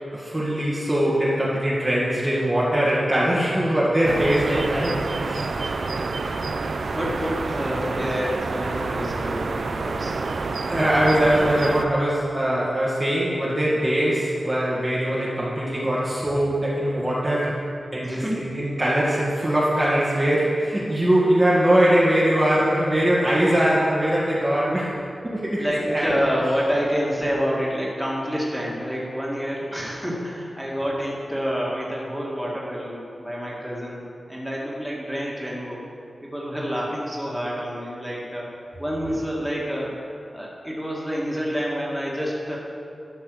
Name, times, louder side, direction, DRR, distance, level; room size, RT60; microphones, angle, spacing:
voice 1, 0.1-5.5 10.7-17.6 17.9-26.1 29.7-29.8, right 1 dB, 20° right, -8 dB, 1.8 m, -22 dB
sound 1, 4.0-11.9, right 3 dB, 75° right, 0.6 m, -28 dB
voice 2, 6.4-10.2 18.0-18.5 25.6-35.9 36.2-38.5 38.8-42.6, equal, 5° right, -5 dB, 2.2 m, -28 dB
12.0 x 6.1 x 6.4 m, 2.5 s
wide cardioid pair, 115°, 0 cm